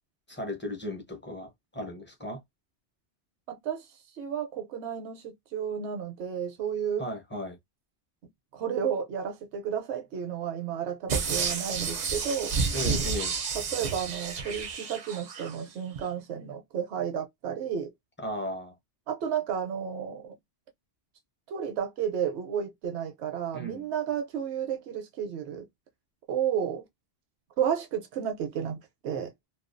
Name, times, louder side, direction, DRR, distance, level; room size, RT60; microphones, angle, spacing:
voice 1, 0.3-2.4 7.0-7.6 12.7-13.4 18.2-18.7 23.5-23.9, left 1 dB, 15° left, 0.5 m, -36 dB
voice 2, 3.5-3.9 4.1-7.0 8.5-12.6 13.5-17.9 19.1-20.3 21.5-25.7 26.3-26.8 27.6-29.3, right 8 dB, 80° right, 0.9 m, -32 dB
sound 1, 11.1-15.5 16.0-16.1, right 5 dB, 50° right, 0.5 m, -30 dB
2.3 x 2.2 x 2.5 m
omnidirectional pair, 1.1 m